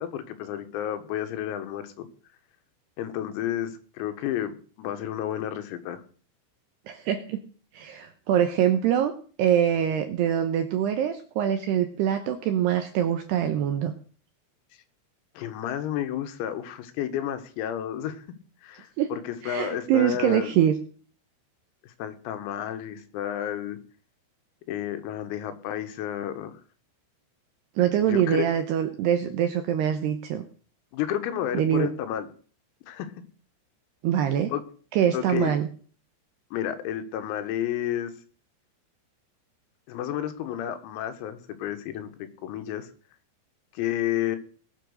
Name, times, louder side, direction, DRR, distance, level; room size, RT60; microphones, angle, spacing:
voice 1, 0.0-2.1 3.0-6.0 15.4-18.2 18.6-20.6 21.8-23.8 24.7-26.5 28.0-28.5 30.9-32.3 32.9-33.1 34.5-34.6 35.1-35.5 36.5-38.1 39.9-42.9 43.7-44.4, left 11 dB, 90° left, 9 dB, 4.2 m, -31 dB
voice 2, 6.9-7.4 7.7-9.1 9.4-13.9 19.0-19.1 19.4-20.8 27.8-30.4 31.5-31.9 34.0-34.5 34.9-35.7, right 10 dB, 80° right, 7 dB, 2.5 m, -24 dB
19.5 x 7.3 x 6.6 m, 0.42 s
omnidirectional pair, 6.0 m